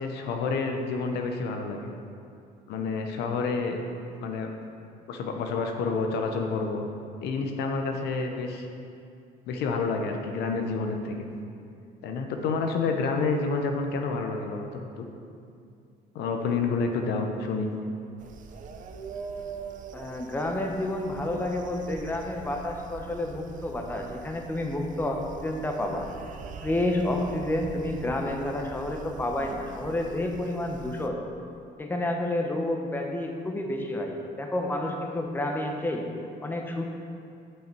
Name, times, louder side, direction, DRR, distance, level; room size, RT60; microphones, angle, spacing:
voice 1, 0.0-1.8 2.7-3.8 4.2-4.5 5.1-6.9 7.2-8.7 9.5-11.3 12.0-15.1 16.1-17.7, left 4 dB, 80° left, 4 dB, 0.8 m, -29 dB
sound 1, 18.2-31.1, right 5 dB, 50° right, 0.6 m, -43 dB
voice 2, 19.9-26.1 26.6-31.2 31.8-36.0 36.4-36.8, left 1 dB, 10° left, 2 dB, 0.8 m, -30 dB
7.8 x 5.7 x 4.5 m, 2.4 s
cardioid pair, 110°, 17 cm